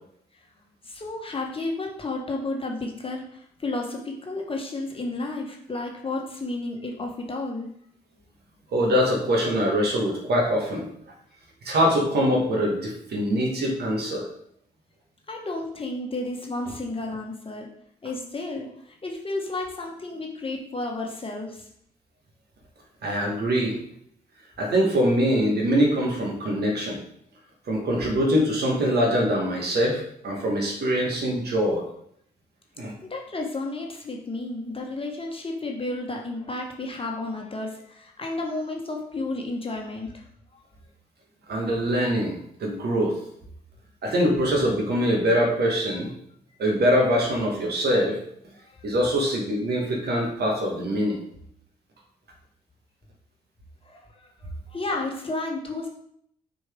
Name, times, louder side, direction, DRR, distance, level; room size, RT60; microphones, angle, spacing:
voice 1, 0.8-7.7 15.3-17.7 18.0-21.7 27.7-27.8 33.0-40.2 48.7-48.8 53.8-55.9, left 2 dB, 25° left, 1 dB, 1.4 m, -32 dB
voice 2, 8.7-10.9 11.6-14.3 23.0-23.8 24.6-27.0 27.7-31.8 32.8-32.9 41.5-43.2 44.0-46.1 46.6-48.2 48.8-51.2, equal, 50° right, -1 dB, 1.9 m, -23 dB
6.2 x 4.4 x 3.7 m, 0.70 s
figure-of-eight pair, 40°, 21 cm